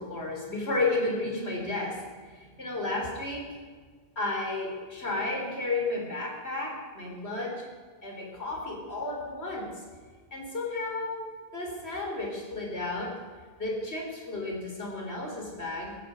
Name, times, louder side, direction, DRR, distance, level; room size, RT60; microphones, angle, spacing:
voice 1, 0.0-3.6 4.2-7.7 8.0-9.7 10.3-13.2 13.6-16.0, left 2 dB, 85° left, 0 dB, 3.9 m, -33 dB
16.5 x 16.5 x 5.0 m, 1.5 s
omnidirectional pair, 1.1 m